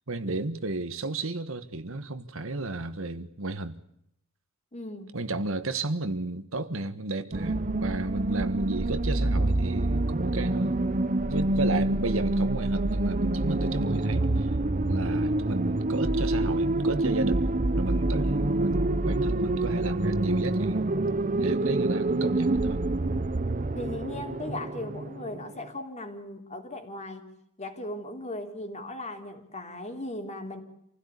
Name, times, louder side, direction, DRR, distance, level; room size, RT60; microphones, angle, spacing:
voice 1, 0.1-3.8 5.1-10.7 11.3-14.5 14.9-17.5 17.8-20.8 21.4-22.8, right 2 dB, 70° right, 1.5 m, -32 dB
voice 2, 4.7-5.2 23.8-27.3 27.6-30.6, left 1 dB, 35° left, 3.4 m, -37 dB
sound 1, 7.3-25.6, right 2 dB, 40° right, 0.9 m, -27 dB
27.5 x 16.5 x 8.3 m
head